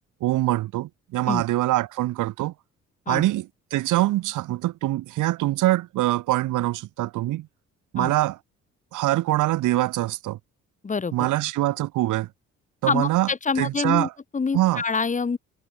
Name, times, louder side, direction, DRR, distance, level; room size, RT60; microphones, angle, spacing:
voice 1, 0.2-2.5 3.1-7.5 7.9-8.4 8.9-10.4 11.1-12.3 12.8-13.3 13.6-14.1 14.5-14.8, right 16 dB, 85° right, 1.1 m, -24 dB
voice 2, 10.8-11.3 12.9-15.4, left 5 dB, 25° left, 1.3 m, -26 dB
cardioid pair, 90°, 30 cm